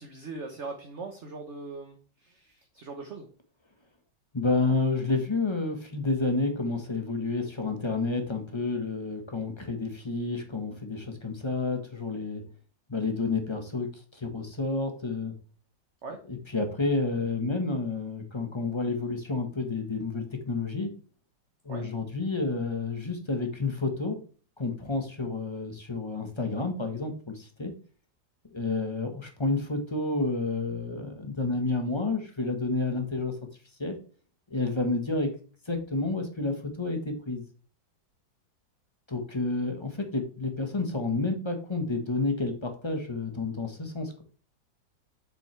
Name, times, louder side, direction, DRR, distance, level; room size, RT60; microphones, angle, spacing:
voice 1, 0.0-3.3 16.0-16.2 21.7-21.8, right 3 dB, 45° right, 4 dB, 1.2 m, -40 dB
voice 2, 4.3-12.4 12.9-15.3 16.3-20.9 21.6-24.2 24.6-27.7 28.5-33.3 33.8-33.9 34.5-35.3 35.7-37.4 39.1-44.2, left 3 dB, 15° left, 5 dB, 1.2 m, -30 dB
7.4 x 6.8 x 3.3 m, 0.40 s
omnidirectional pair, 2.0 m